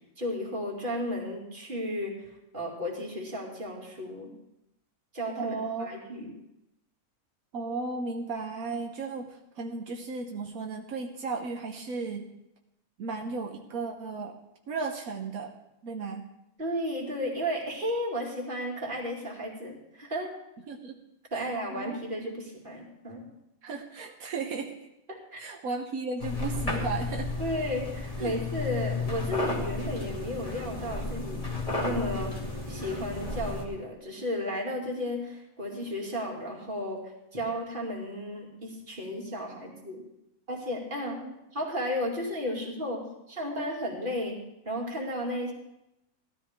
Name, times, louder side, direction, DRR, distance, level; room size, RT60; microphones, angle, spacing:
voice 1, 0.2-4.3 5.1-6.3 16.6-20.3 21.3-23.2 25.1-25.4 27.4-31.4 31.8-32.3 32.7-37.0 37.3-40.0 40.5-41.2 41.5-43.0 43.3-44.4 44.6-45.5, equal, 35° right, -2 dB, 2.6 m, -33 dB
voice 2, 5.4-5.9 7.5-12.3 13.0-14.4 14.7-15.5 15.8-16.3 20.7-21.0 21.3-22.0 23.6-24.8 25.4-27.3 28.2-28.4 41.2-41.3, right 4 dB, 80° right, 2 dB, 1.4 m, -35 dB
sound 1, 26.2-33.6, left 3 dB, 25° left, 2.0 m, -33 dB
16.0 x 13.0 x 3.6 m, 0.87 s
omnidirectional pair, 1.5 m